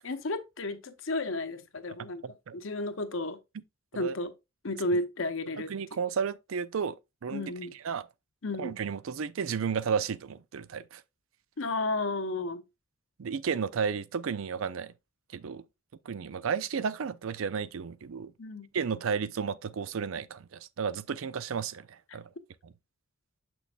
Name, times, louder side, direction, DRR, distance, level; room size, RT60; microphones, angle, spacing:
voice 1, 0.0-2.2 2.5-3.4 3.9-4.3 4.6-5.7 7.3-7.7 8.4-8.8 11.6-12.6 18.4-18.7 22.1-22.2, left 2 dB, 65° left, 0.9 m, -32 dB
voice 2, 5.7-7.0 7.2-7.4 7.8-8.0 8.6-11.0 13.2-14.9 15.3-15.6 16.1-18.3 18.7-22.3, right 6 dB, 70° right, 0.4 m, -32 dB
6.8 x 6.2 x 2.4 m
head